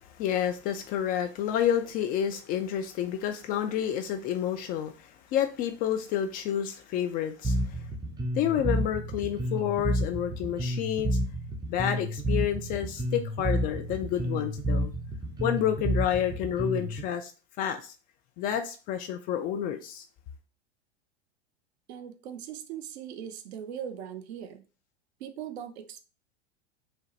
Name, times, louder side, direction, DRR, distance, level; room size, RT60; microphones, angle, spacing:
voice 1, 0.0-7.8 8.4-11.2 11.7-14.9 15.4-17.3 17.6-17.9 18.4-20.0, left 10 dB, 25° left, 0.4 m, -29 dB
Bass guitar, 7.4-17.0, right 1 dB, 10° right, 0.8 m, -30 dB
voice 2, 21.9-24.6 25.2-26.0, right 9 dB, 65° right, 0.8 m, -40 dB
4.6 x 2.9 x 3.1 m
figure-of-eight pair, 90°, 35 cm